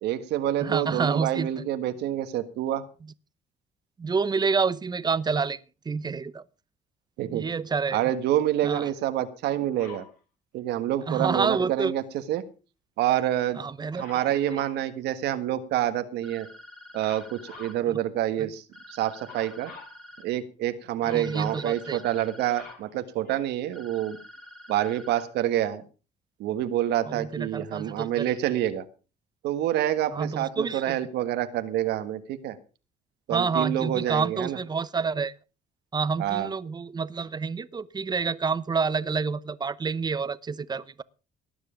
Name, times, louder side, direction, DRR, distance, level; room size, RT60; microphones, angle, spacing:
voice 1, 0.0-2.8 7.2-7.4 7.9-10.0 10.5-12.0 12.3-12.4 13.0-13.6 14.0-16.5 16.9-19.7 20.2-24.2 24.7-25.8 26.4-28.8 29.4-32.6 33.3-34.6 36.2-36.5, right 12 dB, 80° right, 1.6 m, -27 dB
voice 2, 0.6-1.6 4.0-5.6 5.9-6.4 7.3-8.1 8.6-8.9 11.1-11.9 13.6-14.0 14.5-14.6 18.4-18.5 21.0-22.0 27.1-28.3 30.1-31.0 33.3-35.3 35.9-41.0, right 5 dB, 25° right, 0.8 m, -28 dB
Dog, 9.8-10.1 14.0-14.8 17.0-17.8 19.3-20.0 21.0-21.7 22.2-23.7 24.4-24.5, left 5 dB, 60° left, 7.1 m, -46 dB
sound 1, 16.2-17.8 18.7-20.3 21.2-22.8 23.7-25.3, left 1 dB, 5° left, 3.7 m, -48 dB
18.5 x 9.6 x 5.1 m
cardioid pair, 110°, 17 cm